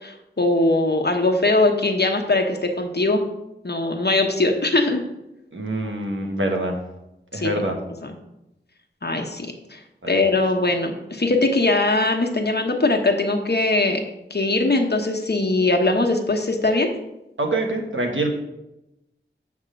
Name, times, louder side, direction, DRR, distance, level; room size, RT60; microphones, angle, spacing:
voice 1, 0.0-3.2 3.6-5.0 7.3-7.6 8.0-8.2 9.0-9.8 10.1-14.0 14.3-16.9, left 2 dB, 55° left, 3 dB, 1.0 m, -21 dB
voice 2, 5.5-6.8 7.3-7.8 10.0-10.2 17.4-18.3, right 1 dB, 80° right, 2 dB, 1.2 m, -25 dB
7.7 x 3.6 x 6.4 m, 0.92 s
wide cardioid pair, 45°, 20 cm